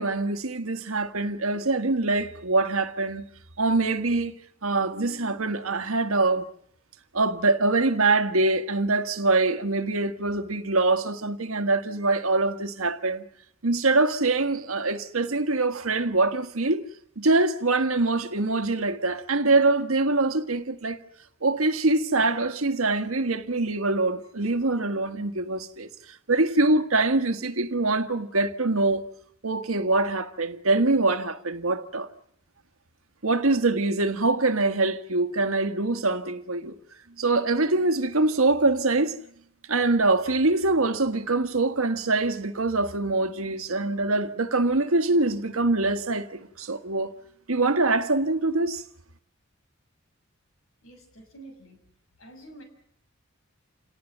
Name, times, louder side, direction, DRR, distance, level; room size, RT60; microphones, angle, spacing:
voice 1, 0.0-3.2 3.6-4.3 4.6-6.5 7.1-13.2 13.6-16.8 17.2-21.0 21.4-29.0 29.4-32.1 33.2-36.7 37.2-39.2 39.7-47.1 47.5-48.8, right 2 dB, 90° right, 1.6 m, -24 dB
voice 2, 50.8-51.8 52.2-52.6, right 2 dB, 75° left, 6.3 m, -48 dB
28.0 x 18.5 x 9.1 m
head